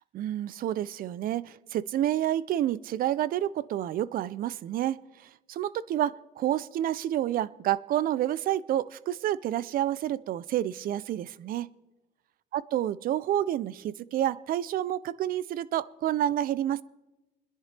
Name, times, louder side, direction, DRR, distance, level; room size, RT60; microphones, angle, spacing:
voice 1, 0.1-11.7 12.5-16.8, right 12 dB, 60° right, 20 dB, 0.5 m, -29 dB
28.5 x 10.5 x 3.3 m, 1.0 s
cardioid pair, 110°, 17 cm